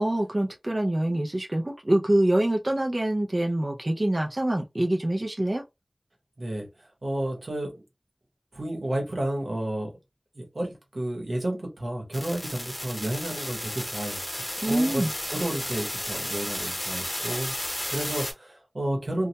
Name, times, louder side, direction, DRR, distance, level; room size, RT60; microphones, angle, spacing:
voice 1, 0.0-5.6 14.6-15.1, right 1 dB, 45° right, 0.3 m, -25 dB
voice 2, 6.4-6.7 7.0-7.8 8.5-10.0 10.3-14.2 14.6-19.3, right 1 dB, 90° right, 0.8 m, -31 dB
sound 1, 12.1-18.3, left 1 dB, 30° left, 0.9 m, -33 dB
2.2 x 2.1 x 2.7 m
wide cardioid pair, 50°, 0 cm